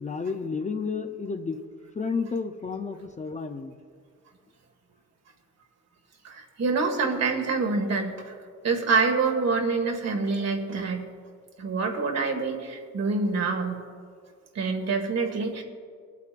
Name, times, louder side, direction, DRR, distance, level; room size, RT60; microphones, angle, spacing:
voice 1, 0.0-1.6 1.9-3.7, left 5 dB, 25° left, 7 dB, 0.6 m, -31 dB
voice 2, 6.2-8.1 8.6-11.1 11.6-13.8 14.6-15.6, right 4 dB, 60° right, 3 dB, 1.7 m, -26 dB
24.0 x 8.3 x 2.5 m, 2.1 s
cardioid pair, 90°, 30 cm